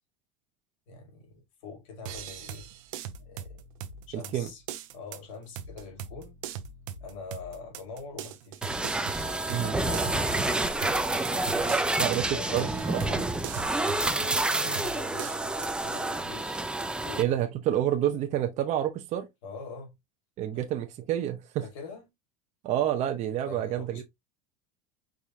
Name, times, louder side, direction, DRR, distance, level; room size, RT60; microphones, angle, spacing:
voice 1, 0.9-2.7 3.2-3.6 4.1-4.6 4.9-6.4 7.0-8.6 9.5-10.5 11.7-14.1 14.6-16.6 17.0-17.4 19.4-19.9 20.5-20.7 21.6-22.0 23.5-24.0, left 4 dB, 85° left, 2.0 m, -44 dB
sound 1, 2.1-15.8, right 8 dB, 80° right, 0.8 m, -41 dB
voice 2, 4.1-4.5 9.5-9.7 12.0-12.2 12.5-13.2 17.2-19.3 20.4-21.6 22.6-24.0, right 11 dB, 45° right, 0.7 m, -28 dB
sound 2, 8.6-17.2, right 2 dB, 5° right, 0.5 m, -28 dB
4.9 x 3.5 x 2.6 m
supercardioid pair, 125°, 17 cm